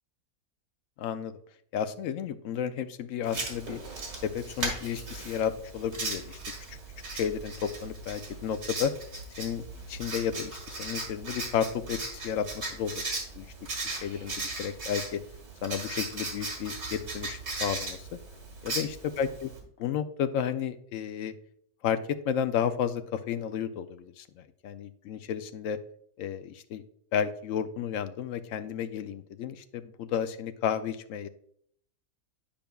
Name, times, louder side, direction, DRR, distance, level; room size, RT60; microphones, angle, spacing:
voice 1, 1.0-1.3 1.7-3.8 4.2-6.4 6.7-6.8 7.1-8.9 9.4-13.0 13.3-13.5 14.0-14.3 14.6-15.2 15.6-18.2 18.6-18.9 19.2-19.5 19.8-21.3 21.8-25.8 26.2-26.8 27.1-31.3, left 8 dB, 70° left, 10 dB, 0.9 m, -32 dB
Writing, 3.2-19.6, right 2 dB, 70° right, 2.3 m, -37 dB
10.0 x 5.2 x 2.3 m, 0.66 s
omnidirectional pair, 1.6 m